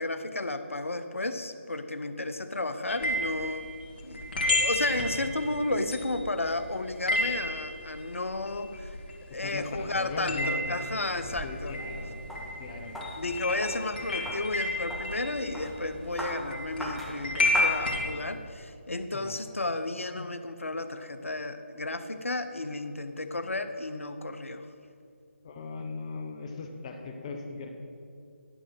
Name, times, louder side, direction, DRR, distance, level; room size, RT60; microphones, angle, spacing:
voice 1, 0.0-3.7 4.0-9.0 9.3-11.8 13.2-24.7, left 2 dB, 85° left, 10 dB, 0.7 m, -33 dB
sound 1, 2.9-9.5 9.7-18.0, left 1 dB, 45° left, 2.1 m, -32 dB
voice 2, 9.3-10.8 11.4-12.3 12.6-13.0 19.1-19.3 25.4-27.7, left 3 dB, 30° left, 4 dB, 0.8 m, -38 dB
sound 2, 10.9-18.5, equal, ahead, 0.7 m, -40 dB
11.0 x 6.2 x 6.1 m, 2.5 s
figure-of-eight pair, 155°, 7 cm